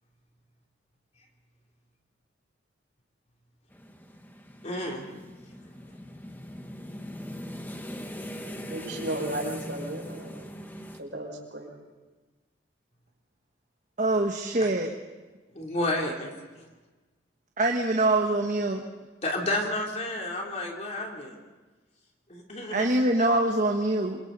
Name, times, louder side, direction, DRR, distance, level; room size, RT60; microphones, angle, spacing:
sound 1, 3.7-11.0, equal, 10° left, 1.2 m, -41 dB
voice 1, 4.6-5.0 14.6-14.7 15.5-16.3 16.6-16.7 19.2-21.4 22.3-22.9, left 1 dB, 35° left, 0 dB, 3.3 m, -31 dB
voice 2, 8.7-10.4 11.0-11.7, right 1 dB, 75° right, 0 dB, 5.7 m, -34 dB
voice 3, 14.0-14.9 17.6-18.8 22.7-24.2, right 2 dB, 40° right, 2 dB, 1.3 m, -24 dB
27.5 x 25.0 x 4.1 m, 1.3 s
head